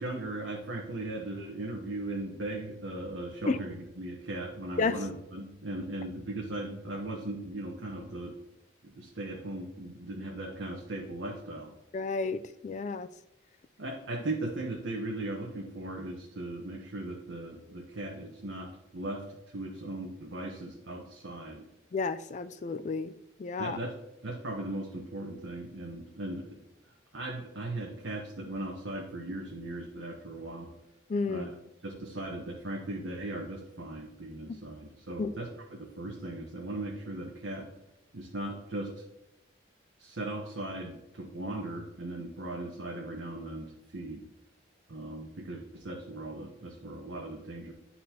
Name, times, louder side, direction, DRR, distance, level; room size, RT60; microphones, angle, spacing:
voice 1, 0.0-8.4 8.8-11.7 13.8-19.2 19.5-21.6 23.6-23.9 24.2-26.6 27.1-30.7 31.3-31.6 31.8-35.5 35.8-37.7 38.1-38.9 40.0-44.2 44.9-47.7, right 2 dB, 80° right, 1.0 m, -38 dB
voice 2, 11.9-13.1 21.9-23.1 23.4-23.8 31.1-31.5 35.2-35.3, left 4 dB, 40° left, 0.3 m, -31 dB
11.0 x 4.3 x 2.8 m
head